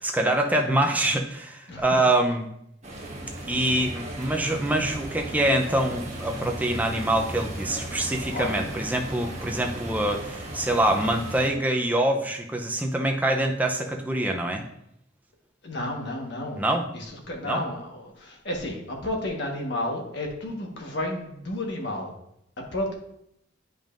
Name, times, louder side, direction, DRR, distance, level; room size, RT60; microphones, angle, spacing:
voice 1, 0.0-2.5 3.4-14.6 16.6-16.9 17.4-17.6, right 1 dB, 10° right, 2 dB, 0.6 m, -25 dB
voice 2, 1.7-2.0 8.3-8.6 15.6-16.7 16.9-22.1 22.6-22.9, left 1 dB, 60° left, 1 dB, 1.4 m, -32 dB
sound 1, 2.8-11.5, right 1 dB, 35° right, 1.3 m, -36 dB
9.1 x 5.4 x 2.6 m, 0.76 s
head